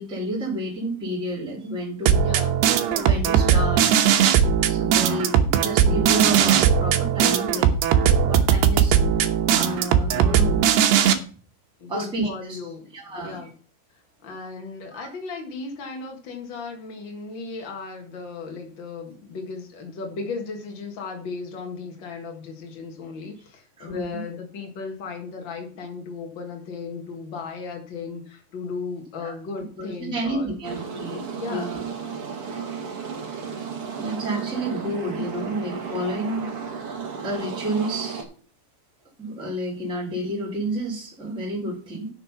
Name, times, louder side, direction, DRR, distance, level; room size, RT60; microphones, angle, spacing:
voice 1, 0.0-2.3 2.9-4.0 4.7-7.8 8.1-9.0 9.6-10.6 11.9-12.6 12.9-13.4 14.9-15.0 23.8-24.2 29.2-29.4 29.8-31.9 34.0-36.5 37.2-38.2 39.2-42.1, right 1 dB, ahead, -3 dB, 3.3 m, -30 dB
sound 1, 2.1-11.1, right 8 dB, 75° right, 2.9 m, -19 dB
voice 2, 2.2-2.6 11.8-13.5 14.2-30.5 31.3-31.7, left 4 dB, 70° left, 3 dB, 1.1 m, -36 dB
sound 2, 30.6-38.2, right 6 dB, 45° right, 2.0 m, -33 dB
10.0 x 6.7 x 5.8 m, 0.40 s
omnidirectional pair, 5.0 m